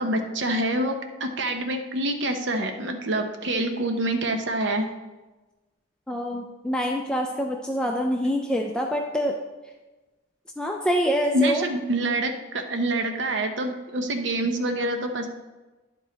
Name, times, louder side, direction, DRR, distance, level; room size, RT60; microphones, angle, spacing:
voice 1, 0.0-4.9 11.3-15.3, right 1 dB, 60° right, 5 dB, 0.8 m, -26 dB
voice 2, 6.1-9.4 10.6-11.6, equal, 5° left, 1 dB, 0.4 m, -25 dB
10.5 x 4.7 x 4.0 m, 1.2 s
head